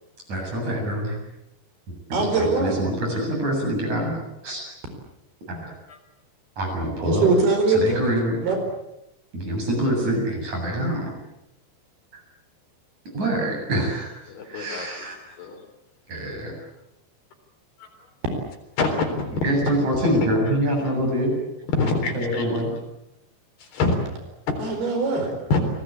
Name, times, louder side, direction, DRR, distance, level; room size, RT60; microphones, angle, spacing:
voice 1, 0.3-1.2 2.1-4.2 4.4-4.7 5.5-5.7 6.6-7.3 7.7-8.4 9.3-11.1 12.1-12.2 13.1-15.4 16.1-16.5 19.4-21.3 22.1-22.7, right 1 dB, 40° right, 1 dB, 9.1 m, -25 dB
voice 2, 2.1-2.8 7.1-8.1 8.4-8.6 24.6-25.3, right 3 dB, 65° right, 5 dB, 6.4 m, -21 dB
voice 3, 14.3-15.1 15.4-15.6 17.8-17.9 18.8-19.3 20.0-20.1 21.7-22.5 23.6-23.9 24.5-24.6 25.5-25.6, left 3 dB, 65° left, 5 dB, 5.7 m, -25 dB
28.5 x 20.0 x 8.5 m, 0.87 s
omnidirectional pair, 5.0 m